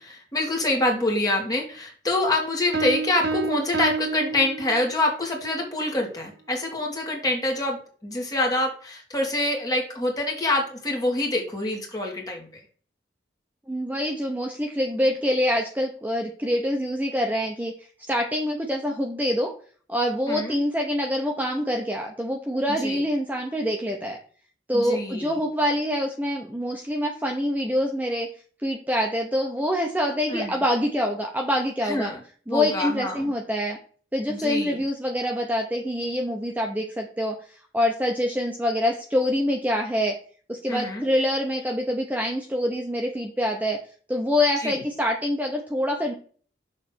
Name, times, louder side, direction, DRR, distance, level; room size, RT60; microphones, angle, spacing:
voice 1, 0.0-12.5 20.3-20.5 22.7-23.0 24.7-25.4 30.3-30.5 31.8-32.2 32.5-33.3 34.3-34.8 40.7-41.0 44.6-44.8, left 2 dB, 20° left, 0 dB, 1.8 m, -26 dB
sound 1, 2.7-5.1, right 4 dB, 65° right, 0.7 m, -29 dB
voice 2, 13.7-17.7 18.0-19.5 19.9-24.2 24.7-28.3 28.6-32.1 32.5-33.8 34.1-37.3 37.7-40.1 40.5-43.8 44.1-46.1, equal, 10° right, 1 dB, 0.7 m, -25 dB
6.7 x 3.2 x 6.0 m, 0.43 s
head